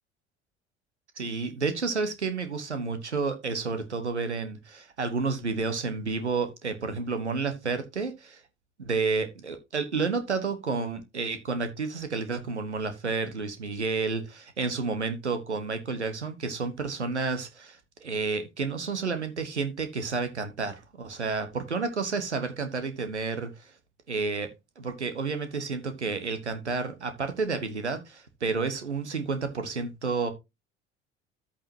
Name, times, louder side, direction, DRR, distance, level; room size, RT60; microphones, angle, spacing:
voice 1, 1.2-8.4 8.8-23.7 24.1-24.5 24.8-30.3, right 4 dB, 90° right, 1.1 m, -30 dB
10.0 x 8.7 x 2.8 m
figure-of-eight pair, 60°, 33 cm